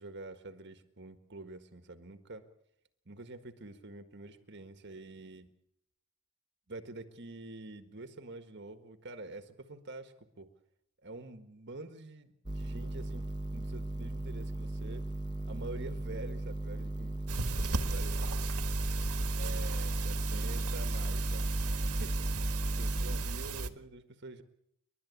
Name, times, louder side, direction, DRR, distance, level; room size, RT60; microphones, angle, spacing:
voice 1, 0.0-2.5 3.0-5.5 6.7-10.5 11.0-13.3 13.5-15.1 15.5-17.2 17.5-18.5 19.3-24.4, right 2 dB, 50° right, 8 dB, 1.6 m, -47 dB
sound 1, 12.5-23.2, right 1 dB, 20° right, 1.2 m, -38 dB
sound 2, 17.3-23.7, right 3 dB, 90° right, 1.7 m, -35 dB
30.0 x 12.0 x 8.4 m, 0.74 s
head